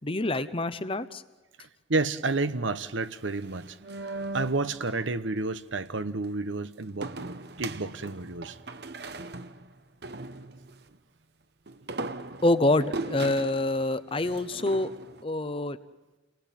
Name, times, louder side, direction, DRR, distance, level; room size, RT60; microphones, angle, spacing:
voice 1, 0.0-1.2 12.4-14.9 15.2-15.8, left 2 dB, 30° left, 0.8 m, -26 dB
voice 2, 1.6-3.8 4.0-7.1 7.6-8.6, right 3 dB, 80° right, 1.1 m, -30 dB
sound 1, 3.1-5.0 7.0-10.8 11.7-15.2, right 2 dB, 55° right, 1.0 m, -39 dB
29.0 x 19.5 x 9.2 m
head